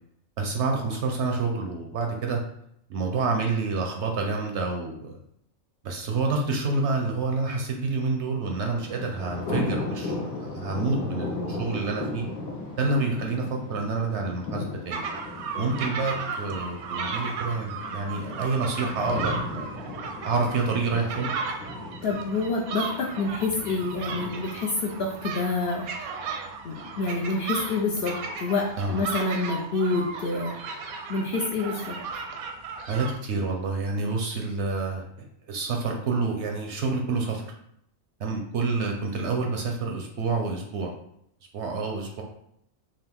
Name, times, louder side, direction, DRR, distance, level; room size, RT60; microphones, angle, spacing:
voice 1, 0.4-2.4 2.9-5.2 5.8-12.2 12.8-15.0 15.6-19.7 20.2-21.3 28.8-29.0 32.9-35.0 35.5-37.4 38.2-40.9 41.5-42.2, right 3 dB, 65° right, 2 dB, 0.7 m, -28 dB
Thunder, 8.6-25.6, left 2 dB, 90° left, 1.5 m, -36 dB
sound 1, 14.9-33.1, right 5 dB, 85° right, 1.0 m, -35 dB
voice 2, 22.0-26.1 26.6-30.5 31.1-32.0, left 3 dB, 65° left, -1 dB, 0.7 m, -27 dB
3.7 x 2.5 x 3.4 m, 0.75 s
omnidirectional pair, 1.5 m